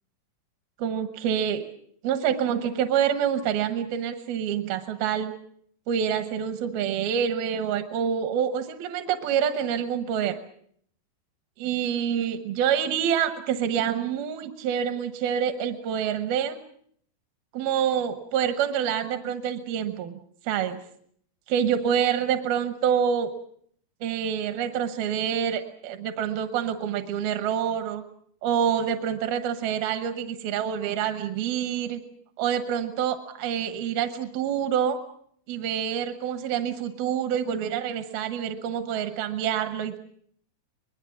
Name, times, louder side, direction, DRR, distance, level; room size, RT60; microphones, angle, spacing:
voice 1, 0.8-1.7 2.0-5.4 5.9-10.4 11.6-16.6 17.5-20.1 20.4-20.8 21.5-23.3 24.0-28.0 28.4-32.0 32.4-35.0 35.5-40.0, right 8 dB, 80° right, 8 dB, 3.0 m, -27 dB
24.5 x 21.0 x 7.1 m, 0.65 s
omnidirectional pair, 4.2 m